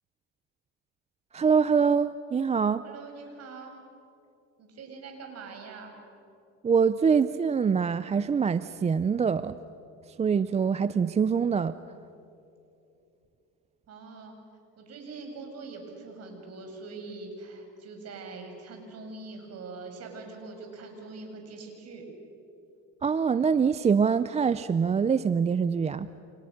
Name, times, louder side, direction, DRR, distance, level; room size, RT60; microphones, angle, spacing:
voice 1, 1.3-2.8 6.6-9.5 10.2-11.8 23.0-26.1, right 6 dB, 20° right, 14 dB, 0.5 m, -24 dB
voice 2, 2.8-3.7 4.6-5.9 13.9-14.4 14.8-22.0, right 3 dB, 45° right, 3 dB, 7.0 m, -43 dB
29.5 x 28.0 x 6.6 m, 2.7 s
supercardioid pair, 105°, 34 cm